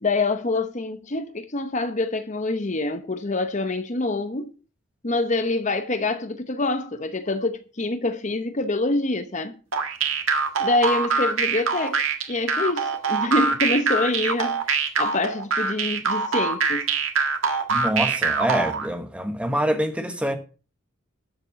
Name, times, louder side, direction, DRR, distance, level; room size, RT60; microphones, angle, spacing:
voice 1, 0.0-4.5 5.0-9.5 10.6-12.0 12.3-16.8, left 2 dB, 35° left, 0.8 m, -26 dB
sound 1, 9.7-18.9, right 5 dB, 85° right, 1.7 m, -24 dB
voice 2, 17.7-20.4, equal, 5° right, 1.3 m, -25 dB
12.0 x 6.6 x 5.9 m
head